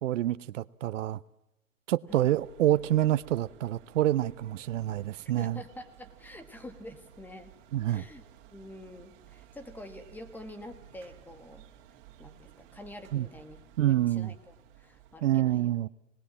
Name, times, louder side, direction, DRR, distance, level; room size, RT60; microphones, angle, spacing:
voice 1, 0.0-1.2 1.9-5.6 7.7-8.0 13.1-13.3 13.8-14.3 15.2-15.9, right 13 dB, 70° right, 0.9 m, -27 dB
sound 1, 2.1-15.2, right 11 dB, 45° right, 3.2 m, -55 dB
voice 2, 5.4-7.5 7.9-11.6 12.2-13.6 13.9-15.7, left 1 dB, 5° left, 1.8 m, -47 dB
26.0 x 20.0 x 7.3 m
hypercardioid pair, 145°, 39 cm